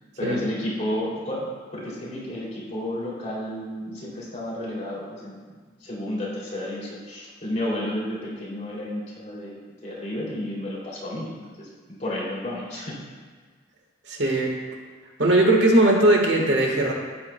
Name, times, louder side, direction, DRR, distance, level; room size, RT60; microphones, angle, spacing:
voice 1, 0.2-5.4 5.8-13.0, left 1 dB, 35° left, -6 dB, 2.7 m, -32 dB
voice 2, 14.1-14.5 15.2-16.9, right 1 dB, 65° right, 1 dB, 1.3 m, -19 dB
12.5 x 9.3 x 2.2 m, 1.5 s
head